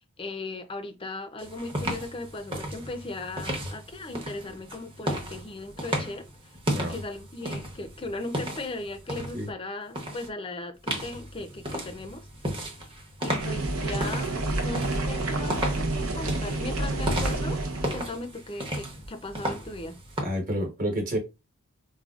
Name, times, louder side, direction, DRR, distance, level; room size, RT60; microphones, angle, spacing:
voice 1, 0.2-6.6 6.9-12.9 13.2-17.6 17.9-20.0, left 2 dB, 25° left, 0.5 m, -38 dB
sound 1, 1.4-9.5 9.9-10.3 10.9-20.2, equal, 25° right, 0.8 m, -34 dB
sound 2, 13.4-18.0, right 2 dB, 75° right, 0.8 m, -29 dB
voice 2, 20.2-21.2, equal, 40° right, 1.2 m, -29 dB
4.8 x 2.2 x 2.4 m
head